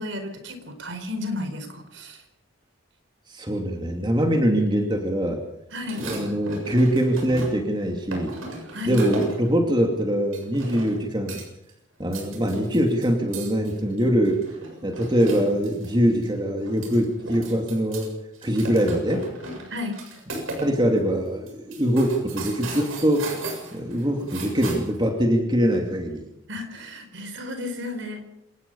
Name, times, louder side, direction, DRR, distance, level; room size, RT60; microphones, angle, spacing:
voice 1, 0.0-2.2 5.7-6.0 8.7-9.0 19.7-20.0 26.5-28.2, left 2 dB, 65° right, 7 dB, 4.7 m, -33 dB
voice 2, 3.3-5.4 6.0-8.4 8.8-11.4 12.0-14.4 14.8-18.1 18.4-19.2 20.6-23.3 23.7-26.2, equal, 20° right, 2 dB, 2.6 m, -23 dB
sound 1, 5.8-7.7 8.1-9.5 10.3-11.0 11.3-11.7 12.0-15.9 16.2-16.3 16.6-18.1 18.3-20.7 21.0-21.1 21.5-25.0, right 2 dB, 85° right, 7.3 m, -36 dB
27.0 x 18.5 x 5.6 m, 0.81 s
head